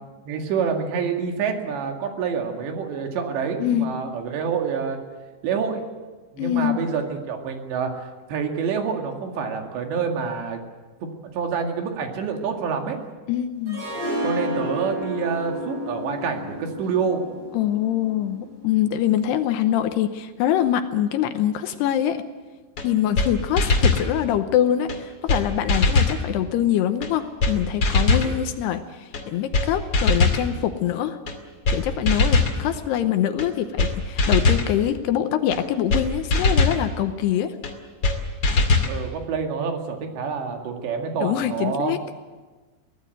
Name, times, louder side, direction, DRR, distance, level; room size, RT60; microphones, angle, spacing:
voice 1, 0.3-5.0 5.4-5.8 6.3-10.6 11.0-11.1 11.3-13.0 14.2-17.2 28.1-28.3 38.9-41.9, right 6 dB, 75° right, 3 dB, 4.3 m, -27 dB
voice 2, 3.6-3.9 6.4-6.9 13.3-13.8 17.5-22.2 22.8-31.2 31.7-37.6 41.2-42.0, left 11 dB, 80° left, 9 dB, 2.8 m, -24 dB
Harp, 13.7-18.7, equal, 60° right, 8.2 m, -31 dB
sound 1, 22.8-22.9 23.2-23.3 23.6-24.1 24.9-25.0 25.3-25.4 25.7-26.2 27.0-27.1 27.4-27.5 27.8-28.3 29.1-29.2 29.5-29.7 29.9-30.4 31.3-31.4 31.7-31.8 32.1-32.6 33.4-33.5 33.8-33.9 34.2-34.7 35.5-35.6 35.9-36.0 36.3-36.8 37.6-37.7 38.0-38.2 38.4-38.9, left 3 dB, 35° left, 2.1 m, -20 dB
23.5 x 17.5 x 7.8 m, 1.3 s
omnidirectional pair, 5.2 m